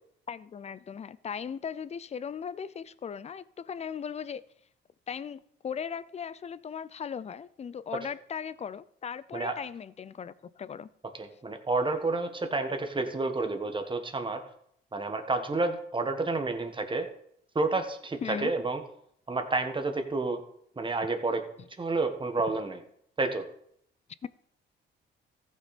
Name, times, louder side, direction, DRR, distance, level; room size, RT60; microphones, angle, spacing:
voice 1, 0.3-4.4 5.1-10.9 18.2-18.5 24.2-24.3, left 7 dB, 35° left, 0.5 m, -38 dB
voice 2, 11.1-14.4 14.9-17.1 17.5-18.8 19.3-20.4 20.7-21.4 21.8-22.8 23.2-23.5, right 3 dB, 25° right, 1.6 m, -30 dB
14.5 x 6.1 x 4.2 m
cardioid pair, 90°, 20 cm